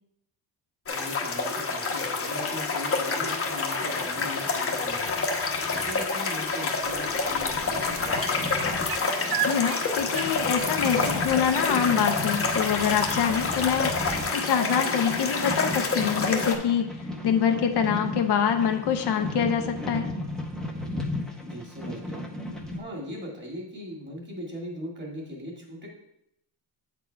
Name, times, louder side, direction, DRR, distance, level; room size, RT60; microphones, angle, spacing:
sound 1, 0.9-16.5, left 4 dB, 30° left, 1.0 m, -28 dB
voice 1, 0.9-5.3 5.7-8.5 21.4-22.2 22.7-25.9, equal, 25° right, -1 dB, 2.0 m, -39 dB
sound 2, 3.6-22.8, left 1 dB, ahead, 0.8 m, -36 dB
sound 3, 7.9-11.5 13.2-13.3, right 13 dB, 55° right, 0.5 m, -36 dB
voice 2, 9.4-16.9 17.2-20.1, left 8 dB, 60° left, 5 dB, 0.7 m, -25 dB
8.1 x 4.4 x 4.5 m, 0.80 s
cardioid pair, 130°, 46 cm